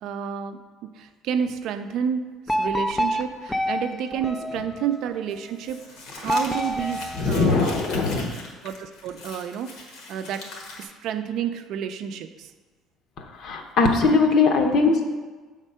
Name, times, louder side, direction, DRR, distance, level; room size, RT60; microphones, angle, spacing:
voice 1, 0.0-7.8 8.6-9.8 10.1-10.5 10.8-12.5 14.1-14.2, right 8 dB, 65° right, 8 dB, 0.4 m, -30 dB
sound 1, 2.5-5.2 6.2-8.0, equal, 10° left, 0.3 m, -28 dB
Crumpling crinkling, 5.3-10.8, left 3 dB, 70° left, 1.3 m, -40 dB
voice 2, 7.2-8.3 13.2-15.1, left 4 dB, 55° left, 4 dB, 0.9 m, -21 dB
7.3 x 3.6 x 5.5 m, 1.3 s
cardioid pair, 135°, 0 cm